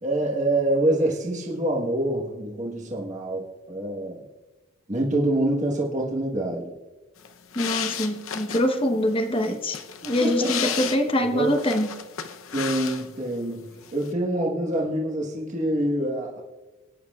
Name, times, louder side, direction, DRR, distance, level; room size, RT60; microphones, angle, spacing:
voice 1, 0.0-4.2 4.9-6.8 10.2-10.9 11.3-11.5 12.5-16.4, right 1 dB, 35° right, -2 dB, 1.4 m, -26 dB
sound 1, 7.2-13.4 13.6-14.1, left 8 dB, 80° left, 0.8 m, -34 dB
voice 2, 7.5-9.8 10.0-11.9, left 1 dB, 25° left, 5 dB, 1.0 m, -24 dB
19.5 x 10.0 x 2.4 m, 1.1 s
head